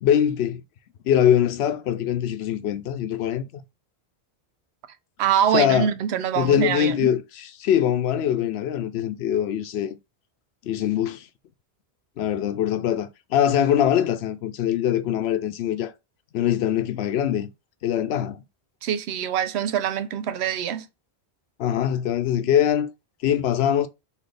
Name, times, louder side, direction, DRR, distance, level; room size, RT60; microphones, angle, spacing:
voice 1, 0.0-0.6 1.0-3.4 5.5-5.9 6.4-10.0 10.6-11.3 12.2-15.9 16.3-17.5 17.8-18.4 21.6-22.9 23.2-23.9, left 10 dB, 80° left, 0.8 m, -22 dB
voice 2, 5.2-7.1 18.8-20.9, right 9 dB, 90° right, 0.8 m, -24 dB
4.1 x 2.8 x 3.3 m
omnidirectional pair, 1.1 m